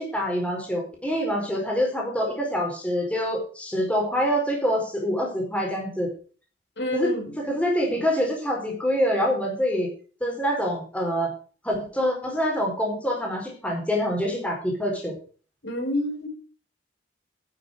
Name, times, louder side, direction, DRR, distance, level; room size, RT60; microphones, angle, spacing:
voice 1, 0.0-6.1 6.9-7.1 7.5-9.9 10.2-11.3 11.6-15.1, equal, 5° left, -1 dB, 4.5 m, -25 dB
voice 2, 6.8-7.3 15.6-16.3, left 1 dB, 75° left, 1 dB, 5.1 m, -28 dB
10.5 x 8.2 x 6.6 m, 0.39 s
head